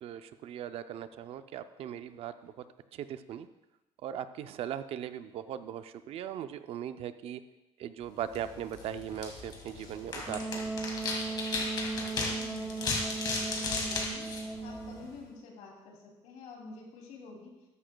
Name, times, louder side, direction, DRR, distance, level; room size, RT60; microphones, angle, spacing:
voice 1, 0.0-2.5 3.1-3.5 4.0-7.4 7.8-10.7, right 10 dB, 55° right, 11 dB, 0.5 m, -39 dB
sound 1, 8.2-15.2, left 3 dB, 35° left, 2.1 m, -36 dB
Wind instrument woodwind instrument, 10.3-15.1, right 3 dB, 5° right, 1.6 m, -37 dB
voice 2, 11.6-14.2 14.6-17.5, left 3 dB, 90° left, 0 dB, 2.8 m, -48 dB
13.5 x 11.5 x 2.3 m, 1.0 s
cardioid pair, 150°, 12 cm